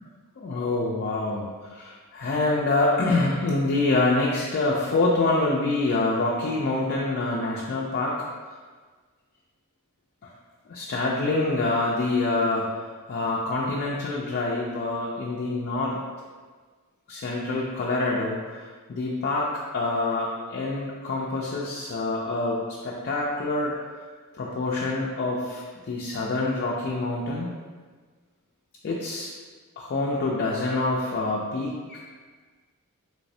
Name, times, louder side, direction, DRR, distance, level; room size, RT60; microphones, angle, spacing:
voice 1, 0.4-8.1 10.2-10.3 10.7-12.7 13.1-16.0 17.1-19.5 19.7-23.7 24.4-27.6 28.8-29.3 29.8-32.0, left 2 dB, 50° left, -3 dB, 0.4 m, -26 dB
3.3 x 3.1 x 2.7 m, 1.4 s
head